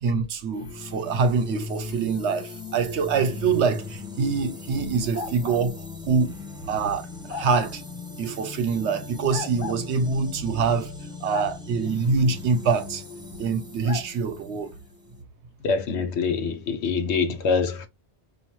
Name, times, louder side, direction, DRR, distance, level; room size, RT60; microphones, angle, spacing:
voice 1, 0.0-6.3 6.7-7.8 8.2-10.9 11.2-13.0 13.4-14.7 17.3-17.4, right 5 dB, 90° right, 1.0 m, -25 dB
sound 1, 0.5-15.2, left 4 dB, 5° right, 0.6 m, -39 dB
sound 2, 5.1-5.7 7.3-7.5 9.3-9.9 11.3-11.5 13.8-14.1, left 4 dB, 50° left, 1.0 m, -34 dB
voice 2, 15.6-17.9, left 5 dB, 80° left, 1.0 m, -25 dB
4.8 x 2.5 x 3.0 m
omnidirectional pair, 1.1 m